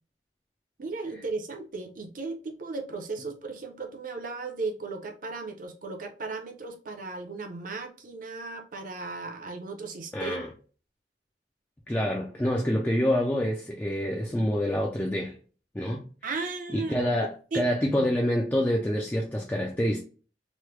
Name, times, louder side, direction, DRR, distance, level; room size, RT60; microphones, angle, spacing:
voice 1, 0.8-10.4 16.2-17.1 17.5-17.7 18.0-18.1, right 3 dB, 45° right, 0.6 m, -36 dB
voice 2, 10.1-10.5 11.9-15.4 15.7-16.0 16.7-17.3 17.5-20.0, equal, 10° left, 0.3 m, -27 dB
3.1 x 2.1 x 3.1 m
head